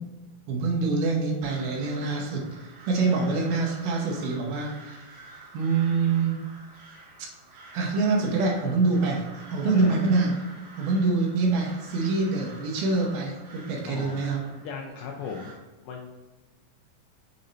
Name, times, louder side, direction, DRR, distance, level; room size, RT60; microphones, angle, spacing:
voice 1, 0.5-5.1 5.5-6.4 7.7-10.4 10.8-14.5, right 3 dB, 85° right, 0 dB, 2.8 m, -25 dB
Crow, 1.4-15.6, right 3 dB, 60° right, 2.7 m, -48 dB
voice 2, 9.6-10.0 13.9-14.3 14.6-15.6 15.8-16.1, left 6 dB, 85° left, 1 dB, 1.8 m, -37 dB
6.8 x 3.8 x 4.3 m, 1.2 s
omnidirectional pair, 4.3 m